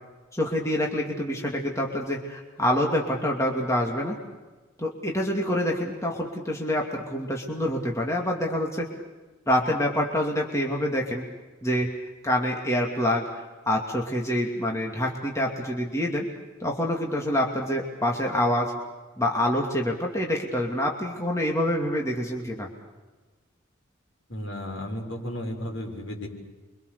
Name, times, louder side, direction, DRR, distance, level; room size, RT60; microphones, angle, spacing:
voice 1, 0.3-4.2 4.8-8.9 9.5-11.2 11.6-11.9 12.2-13.2 13.7-16.3 16.6-18.7 19.2-22.7, left 1 dB, 15° left, -1 dB, 2.7 m, -26 dB
voice 2, 24.3-26.3, left 1 dB, 65° left, 1 dB, 6.5 m, -34 dB
29.5 x 25.0 x 6.9 m, 1.3 s
head